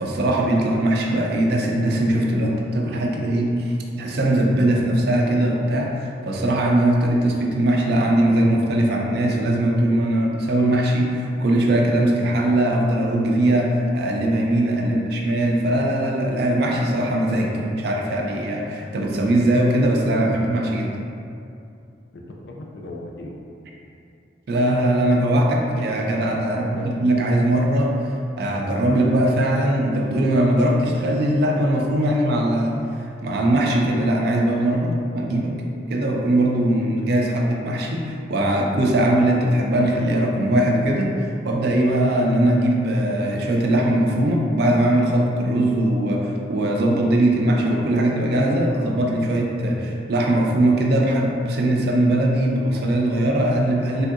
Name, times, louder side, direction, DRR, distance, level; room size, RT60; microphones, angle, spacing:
voice 1, 0.0-21.0 24.5-28.0 28.4-32.8 33.2-35.6 35.9-41.1 41.4-54.1, right 1 dB, 55° right, 0 dB, 0.4 m, -20 dB
voice 2, 22.1-23.4 26.5-26.9 53.9-54.1, left 2 dB, 60° left, -1 dB, 0.4 m, -37 dB
3.4 x 2.7 x 2.4 m, 2.5 s
head